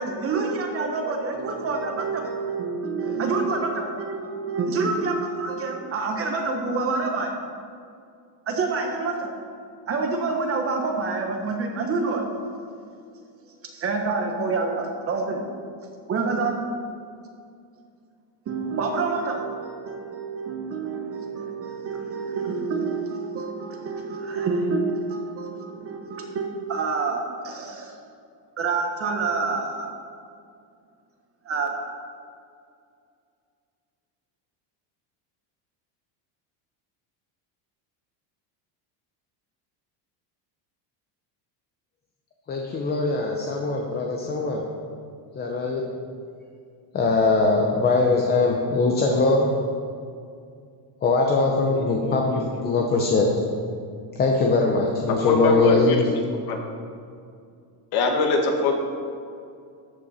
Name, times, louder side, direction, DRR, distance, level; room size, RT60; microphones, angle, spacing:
voice 1, 0.0-7.3 8.5-9.3 9.9-12.2 13.6-15.5 16.1-16.6 18.5-28.0 28.6-29.9 31.4-31.8, right 4 dB, 30° right, 3 dB, 1.1 m, -27 dB
voice 2, 42.5-44.6 45.4-45.8 46.9-49.5 51.0-53.3 54.2-56.2, left 3 dB, 20° left, 0 dB, 0.7 m, -21 dB
voice 3, 51.7-52.4 55.1-56.0 56.5-56.6 57.9-58.7, left 3 dB, 50° left, 2 dB, 1.7 m, -24 dB
13.5 x 8.4 x 4.2 m, 2.3 s
cardioid pair, 170°, 47 cm